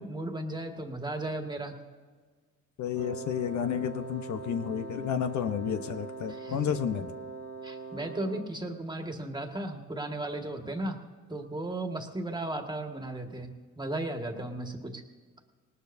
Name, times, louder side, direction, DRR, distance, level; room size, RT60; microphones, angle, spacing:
voice 1, 0.0-1.7 6.4-6.6 7.6-11.0 11.3-13.5 13.8-15.0, right 1 dB, 15° right, 4 dB, 1.8 m, -35 dB
voice 2, 2.8-7.1, left 8 dB, 70° left, 8 dB, 0.9 m, -31 dB
Wind instrument woodwind instrument, 2.9-8.7, right 4 dB, 55° right, 1.6 m, -42 dB
19.0 x 19.0 x 2.7 m, 1.5 s
cardioid pair, 90°, 30 cm